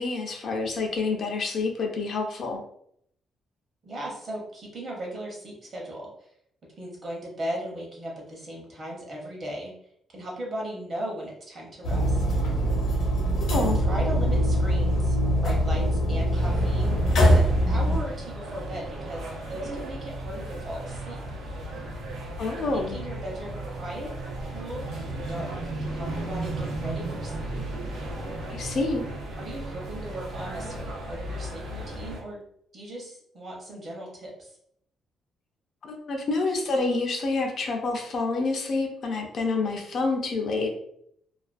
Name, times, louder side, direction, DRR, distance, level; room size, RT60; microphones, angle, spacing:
voice 1, 0.0-2.6 13.4-13.8 22.4-23.0 28.5-29.0 35.8-40.7, left 3 dB, 45° left, 2 dB, 0.3 m, -28 dB
voice 2, 3.8-6.3 6.8-9.7 10.1-12.2 13.7-15.2 15.4-21.2 22.6-24.1 24.5-25.5 25.8-27.5 29.4-32.4 32.7-34.6, right 1 dB, 30° right, -3 dB, 0.7 m, -37 dB
sound 1, 11.8-18.0, equal, 75° left, 0.7 m, -22 dB
sound 2, 16.3-32.2, right 1 dB, 90° right, 0.6 m, -35 dB
2.4 x 2.2 x 2.4 m, 0.71 s
cardioid pair, 170°, 0 cm